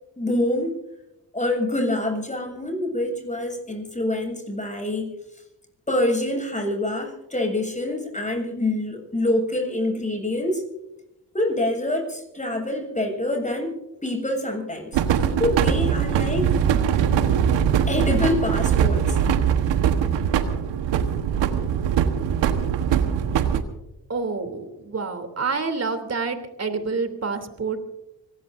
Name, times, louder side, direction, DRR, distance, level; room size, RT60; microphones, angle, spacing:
voice 1, 0.2-0.8 1.3-5.1 5.9-10.6 11.3-13.7 14.0-16.5 17.9-19.2, left 1 dB, 15° left, 2 dB, 7.6 m, -26 dB
sound 1, 14.9-23.6, right 8 dB, 75° right, 1.5 m, -21 dB
voice 2, 24.1-27.9, right 4 dB, 35° right, 7 dB, 3.3 m, -28 dB
25.5 x 18.0 x 2.7 m, 0.92 s
supercardioid pair, 50°, 44 cm